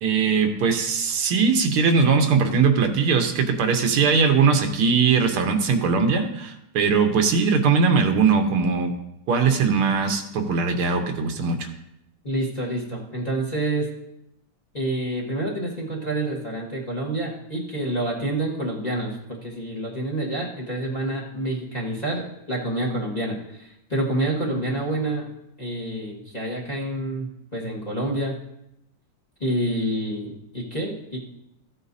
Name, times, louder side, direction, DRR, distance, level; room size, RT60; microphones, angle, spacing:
voice 1, 0.0-8.9 9.3-11.7, right 5 dB, 85° right, 5 dB, 1.8 m, -20 dB
voice 2, 12.2-13.9 14.7-25.3 25.6-28.4 29.4-31.3, right 1 dB, 20° left, -3 dB, 1.4 m, -28 dB
14.5 x 8.2 x 2.7 m, 0.84 s
omnidirectional pair, 2.3 m